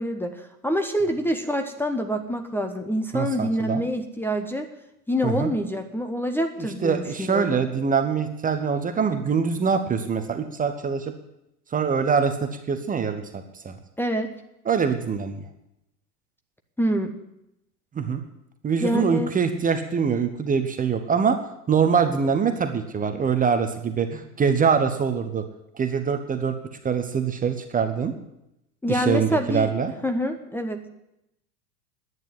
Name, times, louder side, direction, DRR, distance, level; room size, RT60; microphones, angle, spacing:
voice 1, 0.0-4.7 5.1-7.6 14.0-14.3 16.8-17.1 18.8-19.3 28.8-29.7 30.0-30.9, equal, 5° left, 6 dB, 1.0 m, -26 dB
voice 2, 3.1-3.8 5.2-5.5 6.8-11.1 11.7-13.7 14.7-15.4 17.9-18.2 18.6-21.4 21.7-25.5 25.7-26.5 26.8-28.1 28.9-29.9, right 6 dB, 15° right, 8 dB, 1.0 m, -24 dB
10.5 x 9.4 x 9.6 m, 0.86 s
figure-of-eight pair, 90°, 48 cm